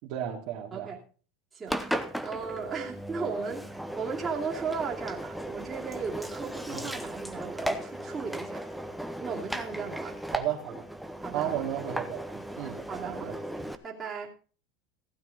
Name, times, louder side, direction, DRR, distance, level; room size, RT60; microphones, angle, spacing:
voice 1, 0.0-1.0 6.7-6.9 10.3-10.9 11.3-13.4, right 11 dB, 55° right, 0 dB, 2.5 m, -34 dB
voice 2, 1.5-8.7 9.2-10.2 11.2-11.6 11.9-12.1 12.9-14.3, right 5 dB, 15° right, -3 dB, 2.6 m, -36 dB
Engine, 1.7-13.8, right 1 dB, ahead, 0.9 m, -36 dB
15.5 x 9.1 x 3.9 m, 0.39 s
supercardioid pair, 145°, 0 cm